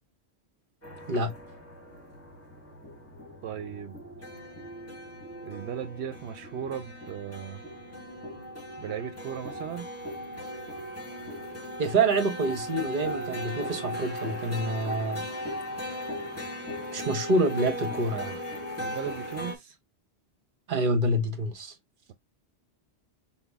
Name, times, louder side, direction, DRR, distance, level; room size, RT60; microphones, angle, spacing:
sound 1, 0.8-19.6, equal, 15° left, 1.1 m, -38 dB
voice 1, 3.4-4.0 5.4-7.6 8.8-9.9 18.8-19.8, right 8 dB, 80° right, 0.9 m, -37 dB
voice 2, 11.8-15.2 16.9-18.4 20.7-21.7, right 2 dB, 50° right, 1.1 m, -27 dB
5.8 x 2.1 x 3.4 m
omnidirectional pair, 1.1 m